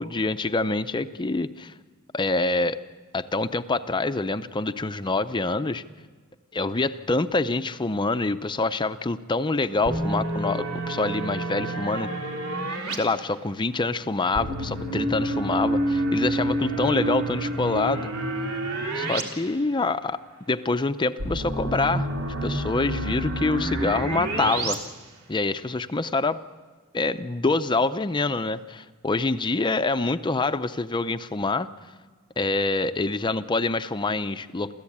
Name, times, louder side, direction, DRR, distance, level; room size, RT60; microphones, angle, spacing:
voice 1, 0.0-1.7 2.1-2.8 3.1-5.8 6.5-12.1 12.9-18.1 18.9-20.2 20.5-22.1 22.4-24.8 25.3-26.4 26.9-31.7 32.4-34.7, left 3 dB, 20° left, 10 dB, 0.6 m, -26 dB
sound 1, 9.8-13.0 14.3-19.2 19.5-19.6 21.2-24.7, right 1 dB, 80° right, 3.3 m, -28 dB
28.5 x 14.0 x 8.6 m, 1.4 s
head